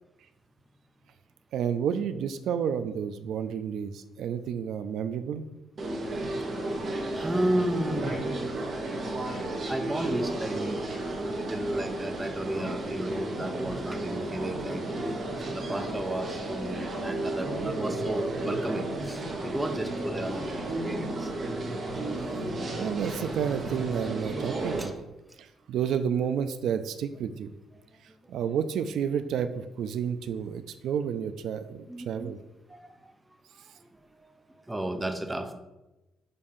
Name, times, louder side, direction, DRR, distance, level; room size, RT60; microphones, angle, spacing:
voice 1, 1.5-5.4 22.7-24.9 25.4-27.5 28.3-32.4, right 8 dB, 70° right, 10 dB, 0.3 m, -30 dB
sound 1, 5.8-24.9, right 2 dB, 40° right, 1.0 m, -33 dB
voice 2, 6.0-6.5 6.8-8.2 9.6-15.0 15.4-21.3 22.0-22.1 24.8-24.9 25.9-26.0 27.7-27.8 31.9-32.3 32.7-33.1 33.5-33.9 34.2-35.5, right 1 dB, 10° right, 5 dB, 0.5 m, -33 dB
6.7 x 2.6 x 5.4 m, 1.0 s
cardioid pair, 165°, 0 cm